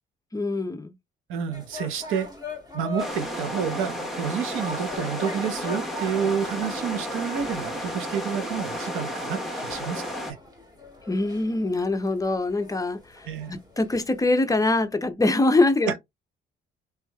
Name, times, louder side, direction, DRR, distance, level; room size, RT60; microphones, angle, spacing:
voice 1, 0.3-0.9 11.1-16.0, left 2 dB, 15° left, 0.6 m, -24 dB
voice 2, 1.3-2.3 2.7-10.1 13.3-13.5 15.9-16.0, right 7 dB, 85° right, 0.7 m, -29 dB
sound 1, 1.5-14.3, left 2 dB, 20° right, 1.5 m, -42 dB
sound 2, 3.0-10.3, equal, ahead, 1.0 m, -32 dB
3.1 x 3.1 x 2.3 m
cardioid pair, 90°, 20 cm